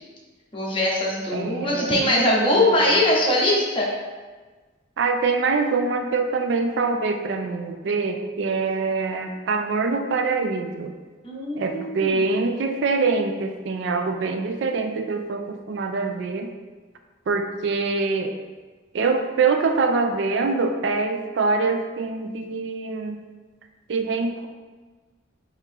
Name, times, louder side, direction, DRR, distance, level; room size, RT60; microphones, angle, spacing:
voice 1, 0.5-3.9 11.2-12.3, left 1 dB, 25° left, -3 dB, 0.8 m, -22 dB
voice 2, 1.3-3.0 5.0-10.9 11.6-16.5 17.3-18.4 18.9-23.2 23.9-24.5, right 4 dB, 65° right, 6 dB, 0.3 m, -24 dB
3.7 x 2.9 x 4.4 m, 1.3 s
head